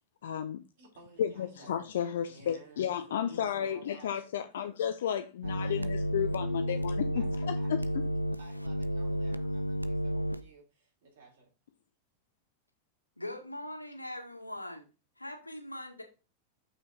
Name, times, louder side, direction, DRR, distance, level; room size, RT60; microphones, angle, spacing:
voice 1, 0.2-0.6 1.2-7.1 7.7-7.8, left 9 dB, 60° left, 0.5 m, -33 dB
voice 2, 0.8-1.7 2.3-4.7 5.4-5.9 6.7-6.8 7.2-8.0 8.4-11.5, right 4 dB, 60° right, 4.0 m, -55 dB
sound 1, 5.4-10.4, equal, 90° right, 0.5 m, -32 dB
voice 3, 13.2-14.8 15.2-16.0, left 1 dB, 85° left, 1.6 m, -41 dB
6.8 x 5.8 x 3.9 m
figure-of-eight pair, 90°, 0 cm